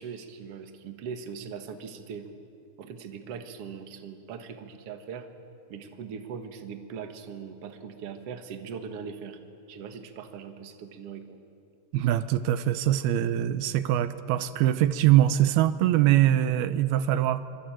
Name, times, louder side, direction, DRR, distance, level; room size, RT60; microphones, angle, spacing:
voice 1, 0.0-2.3 2.8-5.3 5.7-9.4 9.7-11.4, right 6 dB, 50° right, 6 dB, 2.2 m, -40 dB
voice 2, 11.9-17.4, right 12 dB, 85° right, 12 dB, 2.8 m, -23 dB
25.5 x 25.0 x 9.1 m, 2.4 s
omnidirectional pair, 4.3 m